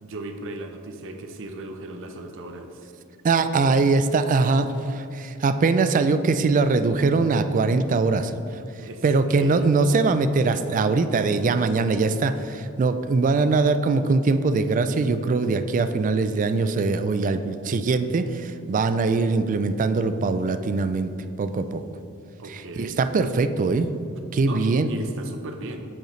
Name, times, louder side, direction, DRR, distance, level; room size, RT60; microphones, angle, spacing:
voice 1, 0.0-2.8 8.8-9.7 22.4-23.0 24.4-25.9, right 2 dB, 65° right, 5 dB, 0.7 m, -37 dB
voice 2, 3.2-8.3 9.0-21.1 21.4-21.8 22.5-23.9 24.3-24.9, right 3 dB, 35° right, 10 dB, 0.3 m, -22 dB
8.7 x 5.2 x 3.2 m, 2.7 s
head